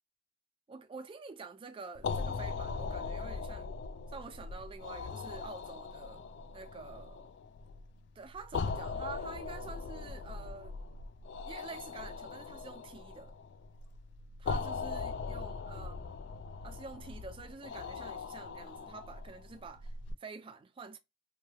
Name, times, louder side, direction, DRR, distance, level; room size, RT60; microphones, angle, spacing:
voice 1, 0.7-3.7 4.1-6.2 6.5-7.3 8.2-10.8 11.4-13.3 14.4-16.2 16.6-19.9 20.2-21.0, right 4 dB, 25° right, 0.3 m, -48 dB
sound 1, 1.9-20.1, left 4 dB, 60° left, 0.3 m, -40 dB
3.1 x 2.2 x 2.8 m
head